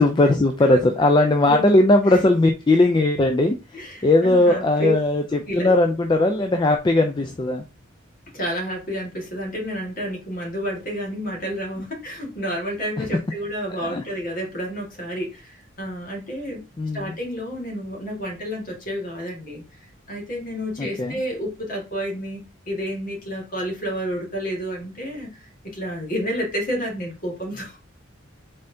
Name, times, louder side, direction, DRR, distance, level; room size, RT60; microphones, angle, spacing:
voice 1, 0.0-7.6 13.0-13.2 13.7-14.0 16.8-17.2 20.8-21.2, left 2 dB, 25° left, 5 dB, 0.3 m, -19 dB
voice 2, 3.7-4.9 5.5-5.7 8.3-16.6 16.9-19.8 20.1-27.8, equal, 45° left, -1 dB, 1.8 m, -30 dB
4.2 x 3.7 x 2.7 m, 0.28 s
head